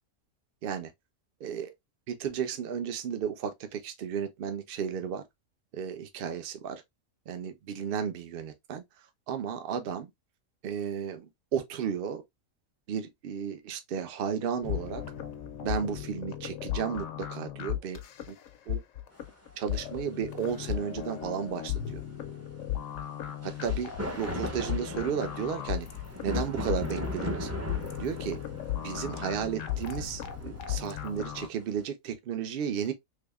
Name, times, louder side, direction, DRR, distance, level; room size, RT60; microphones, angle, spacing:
voice 1, 1.4-1.7 2.1-5.2 5.7-6.8 7.3-8.8 9.3-10.1 10.6-12.2 12.9-15.0 15.6-18.0 18.3-18.4 18.7-18.8 19.6-22.0 23.6-23.9 24.2-25.9 26.2-27.5 28.0-28.4 28.8-32.9, right 8 dB, 55° right, 0.7 m, -33 dB
sound 1, 14.6-31.5, left 11 dB, 75° left, 0.9 m, -36 dB
sound 2, 19.5-19.6 23.4-31.8, left 1 dB, 15° right, 0.6 m, -37 dB
3.5 x 3.1 x 2.2 m
omnidirectional pair, 1.4 m